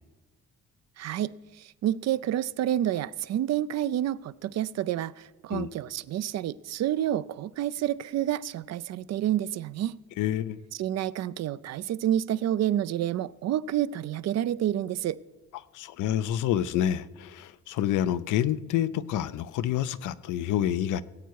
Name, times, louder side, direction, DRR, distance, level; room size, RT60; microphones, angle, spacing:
voice 1, 1.0-10.0 10.8-15.2, right 12 dB, 60° right, 0.4 m, -29 dB
voice 2, 10.2-10.6 15.7-21.0, left 11 dB, 85° left, 0.6 m, -28 dB
18.0 x 8.2 x 4.6 m
cardioid pair, 90°, 30 cm